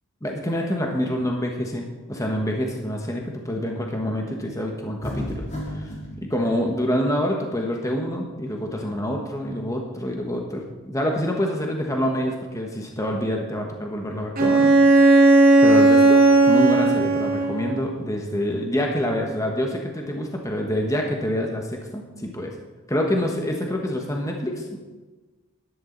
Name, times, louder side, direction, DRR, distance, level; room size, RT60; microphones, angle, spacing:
voice 1, 0.2-5.4 5.7-5.9 6.3-14.7 15.0-15.1 15.6-22.5 22.9-24.8, equal, 15° left, 1 dB, 1.3 m, -26 dB
sound 1, 5.0-6.1, left 1 dB, 35° left, 3.0 m, -31 dB
Bowed string instrument, 14.4-17.9, right 2 dB, 40° right, 2.2 m, -15 dB
13.0 x 11.5 x 4.0 m, 1.2 s
head